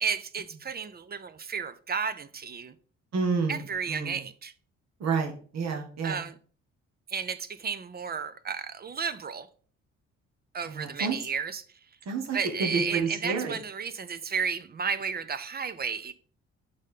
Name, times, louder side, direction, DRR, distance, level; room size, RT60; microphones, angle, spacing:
voice 1, 0.0-2.7 3.5-4.5 6.0-6.3 7.1-9.5 10.5-11.6 12.3-16.1, right 6 dB, 30° right, 0.6 m, -33 dB
voice 2, 3.1-3.6 3.9-4.2 5.0-6.2 10.7-11.2 12.1-13.6, right 4 dB, 60° right, 1.5 m, -29 dB
5.1 x 4.2 x 5.5 m
cardioid pair, 90°, 30 cm